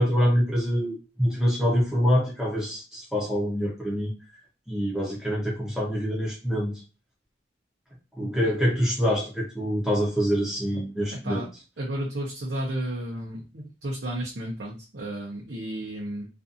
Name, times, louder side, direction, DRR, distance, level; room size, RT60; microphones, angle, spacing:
voice 1, 0.0-4.1 4.7-6.8 8.2-11.4, equal, 5° right, -4 dB, 0.6 m, -25 dB
voice 2, 8.2-8.5 11.1-11.5 11.8-16.3, right 1 dB, 75° right, -4 dB, 0.7 m, -33 dB
2.6 x 2.4 x 2.5 m, 0.31 s
head